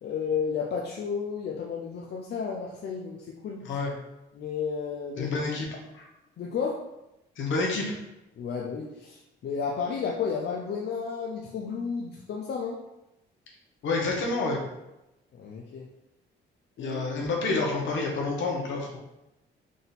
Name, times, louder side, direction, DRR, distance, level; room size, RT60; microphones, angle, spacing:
voice 1, 0.0-3.6 4.3-5.3 6.4-6.8 8.4-12.8 15.4-15.9 16.8-17.0, left 6 dB, 55° left, -1 dB, 0.6 m, -32 dB
voice 2, 5.2-5.7 5.9-6.1 7.4-7.9 13.8-14.6 16.8-19.0, left 3 dB, 70° left, -1 dB, 1.2 m, -28 dB
3.8 x 2.7 x 4.0 m, 0.92 s
cardioid pair, 90°, 20 cm